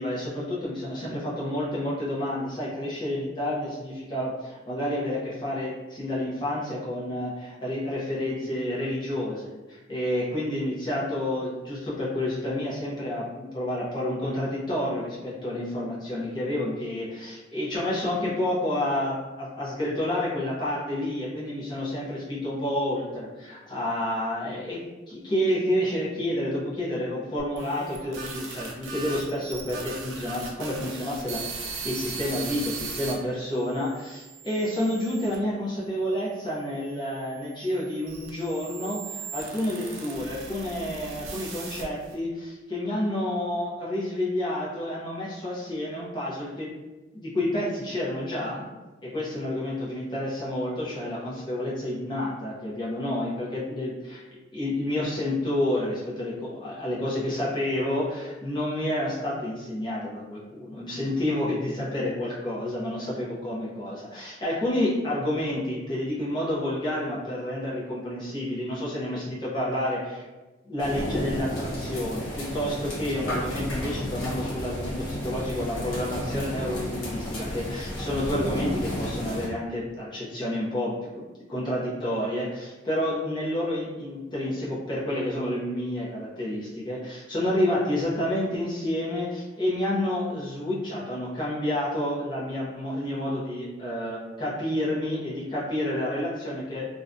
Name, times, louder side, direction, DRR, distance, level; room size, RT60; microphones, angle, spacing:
voice 1, 0.0-24.8 25.1-46.7 47.1-48.7 49.0-54.2 54.5-70.2 70.6-81.1 81.5-96.9, left 1 dB, 20° left, -7 dB, 0.6 m, -29 dB
sound 1, 27.4-33.1 33.8-35.4 36.2-42.1, right 4 dB, 70° right, 0.5 m, -39 dB
sound 2, 70.8-79.5, equal, 80° left, 0.9 m, -32 dB
2.5 x 2.1 x 2.5 m, 1.2 s
head